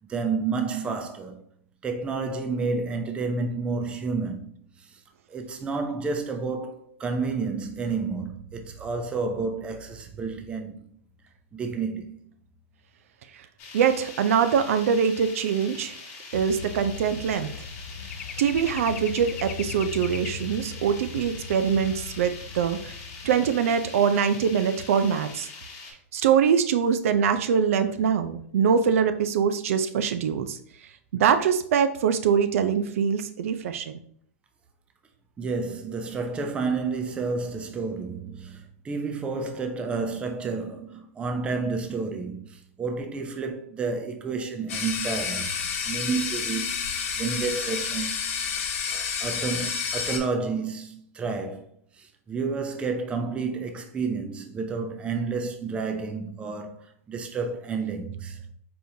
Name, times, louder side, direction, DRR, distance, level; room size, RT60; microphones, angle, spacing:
voice 1, 0.1-1.4 1.8-4.5 4.8-4.9 5.3-10.9 11.5-12.3 35.4-48.6 48.9-51.7 52.0-58.4, right 4 dB, 15° right, 0.5 m, -30 dB
sound 1, 13.6-25.9, left 4 dB, 35° left, 1.2 m, -43 dB
voice 2, 13.7-16.0 16.3-17.5 18.4-22.9 23.2-25.5 26.1-30.6 31.1-33.9, right 7 dB, 70° right, 0.4 m, -23 dB
sound 2, 16.3-24.8 25.1-25.4, left 6 dB, 85° left, 0.4 m, -39 dB
sound 3, 44.7-50.2, left 6 dB, 70° left, 1.0 m, -30 dB
4.3 x 3.6 x 2.7 m
hypercardioid pair, 145°, 8 cm